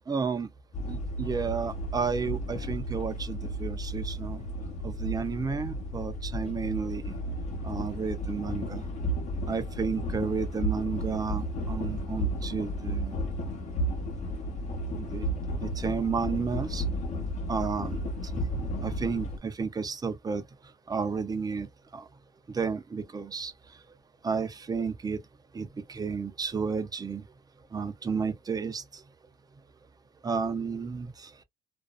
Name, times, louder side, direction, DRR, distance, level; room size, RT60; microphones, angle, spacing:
voice 1, 0.1-0.5 0.9-4.4 4.8-7.1 7.6-8.8 9.5-13.2 15.0-15.3 15.6-16.9 17.5-18.1 18.4-18.5 18.8-20.4 20.9-21.7 21.9-22.1 22.5-23.5 24.2-25.2 25.5-27.2 27.7-29.0 30.2-31.3, right 5 dB, 20° right, 0.6 m, -32 dB
sound 1, 0.7-19.4, equal, 40° left, 0.9 m, -33 dB
2.5 x 2.2 x 2.2 m
cardioid pair, 110°, 17 cm